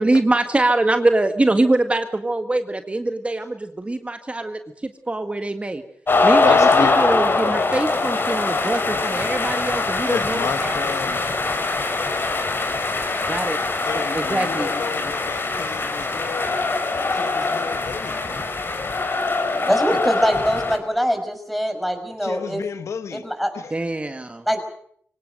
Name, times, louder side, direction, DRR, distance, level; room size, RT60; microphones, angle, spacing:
voice 1, 0.0-5.8 6.2-10.7 13.3-13.6 13.9-14.7 23.7-24.5, right 2 dB, 25° right, 1.9 m, -23 dB
sound 1, 6.1-20.8, left 3 dB, 50° left, 5.1 m, -22 dB
voice 2, 6.4-6.9 10.1-11.2 13.9-16.5 16.9-18.2 22.2-23.2, left 6 dB, 80° left, 1.2 m, -30 dB
voice 3, 19.6-22.6 23.1-23.5 24.5-24.6, equal, ahead, 5.8 m, -23 dB
24.5 x 18.0 x 7.9 m
cardioid pair, 70°, 5 cm